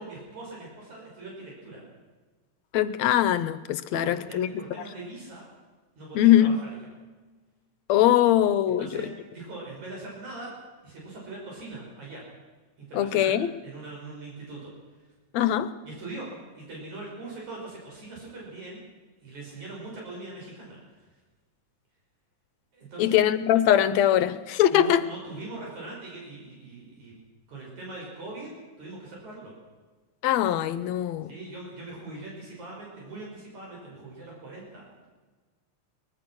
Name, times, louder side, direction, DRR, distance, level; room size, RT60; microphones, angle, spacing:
voice 1, 0.0-1.8 3.9-5.5 6.0-6.8 8.7-10.5 10.8-12.2 12.8-14.7 15.8-18.8 19.2-20.8 22.7-23.2 24.7-27.1 27.5-29.5 31.3-35.1, right 2 dB, 75° right, -3 dB, 7.4 m, -41 dB
voice 2, 2.7-4.5 6.2-6.6 7.9-9.1 12.9-13.5 15.3-15.7 23.0-25.0 30.2-31.3, left 11 dB, 70° left, 14 dB, 1.9 m, -22 dB
23.5 x 20.5 x 6.2 m, 1.3 s
omnidirectional pair, 3.4 m